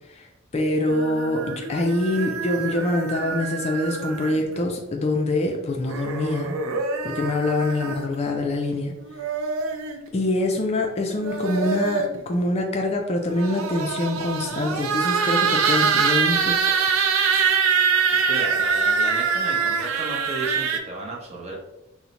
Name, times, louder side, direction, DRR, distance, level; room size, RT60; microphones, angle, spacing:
voice 1, 0.5-6.6 7.0-8.9 10.1-16.6, left 2 dB, 30° left, 2 dB, 0.3 m, -25 dB
sound 1, 0.9-4.6 5.8-8.1 9.0-10.0 11.1-12.2 13.2-20.8, right 5 dB, 70° right, 0.4 m, -24 dB
voice 2, 18.1-21.5, right 2 dB, 30° right, -3 dB, 0.8 m, -33 dB
3.8 x 2.1 x 2.9 m, 0.94 s
head